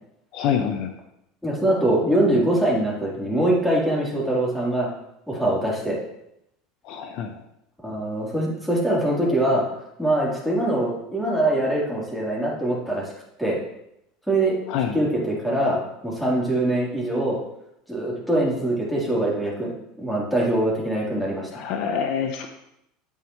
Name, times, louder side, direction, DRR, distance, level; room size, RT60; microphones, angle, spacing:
voice 1, 0.3-0.9 6.9-7.3 14.7-15.0 21.5-22.5, left 7 dB, 60° left, 6 dB, 0.9 m, -26 dB
voice 2, 1.4-4.9 5.3-6.0 7.8-9.7 10.0-13.1 13.4-13.6 14.3-14.7 14.9-17.4 17.9-21.6, right 1 dB, ahead, -5 dB, 3.7 m, -23 dB
9.3 x 8.5 x 3.2 m, 0.80 s
hypercardioid pair, 95°, 0 cm